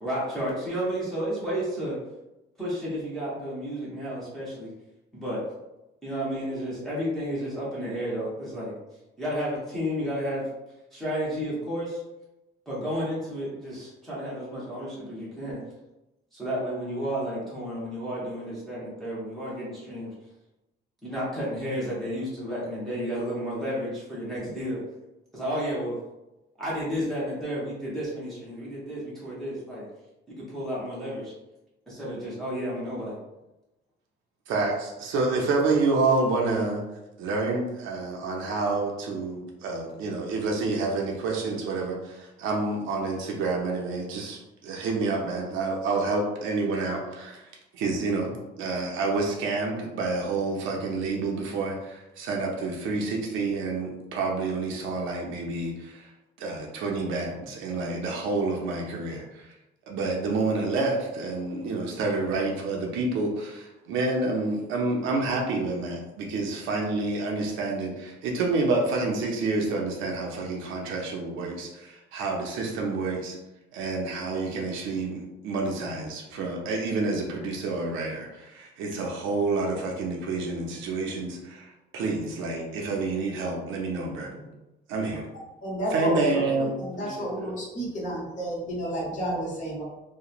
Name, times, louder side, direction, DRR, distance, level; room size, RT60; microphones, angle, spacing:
voice 1, 0.0-2.0 2.6-4.7 5.1-5.4 6.0-8.7 9.2-10.5 10.9-12.0 12.7-15.6 16.3-20.1 21.0-24.8 25.3-26.0 26.6-29.8 30.3-31.3 31.9-33.2 85.1-85.2 86.3-86.5 87.0-87.5, equal, ahead, -9 dB, 0.7 m, -32 dB
voice 2, 34.5-36.8 37.2-47.4 47.7-56.1 56.4-59.5 59.9-73.4 73.7-84.5 84.9-85.2 85.9-86.7, right 3 dB, 90° right, 0 dB, 0.5 m, -28 dB
voice 3, 85.6-89.8, right 1 dB, 40° left, -4 dB, 1.0 m, -31 dB
2.9 x 2.1 x 2.4 m, 0.97 s
cardioid pair, 150°, 20 cm